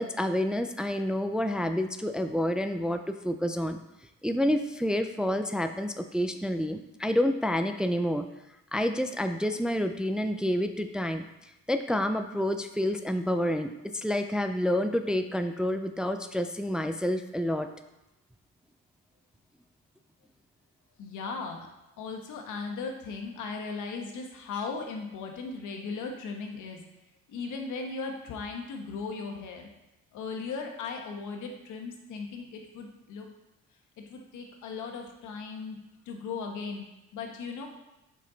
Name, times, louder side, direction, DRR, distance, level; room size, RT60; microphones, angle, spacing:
voice 1, 0.0-3.8 4.2-8.3 8.7-11.3 11.7-17.7, left 1 dB, 5° right, 8 dB, 0.4 m, -28 dB
voice 2, 21.0-21.7 22.0-26.8 27.3-29.7 30.1-33.3 34.1-35.8 36.0-36.9 37.1-37.7, left 4 dB, 80° left, 3 dB, 1.2 m, -37 dB
6.6 x 5.3 x 3.9 m, 0.94 s
cardioid pair, 90°, 30 cm